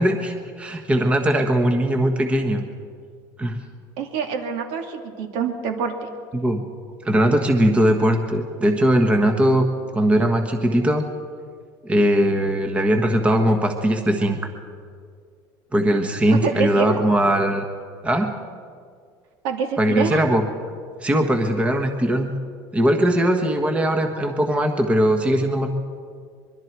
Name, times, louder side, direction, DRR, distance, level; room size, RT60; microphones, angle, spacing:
voice 1, 0.0-2.7 3.4-3.6 6.3-6.7 7.0-9.7 9.9-11.0 11.8-14.4 15.7-17.6 18.0-18.3 19.8-20.5 21.0-22.3 22.7-25.7, right 1 dB, 10° right, 5 dB, 1.3 m, -20 dB
voice 2, 4.0-5.9 16.4-17.0 19.4-20.2, right 6 dB, 65° right, 4 dB, 2.7 m, -25 dB
25.0 x 22.5 x 4.6 m, 2.1 s
cardioid pair, 155°, 10 cm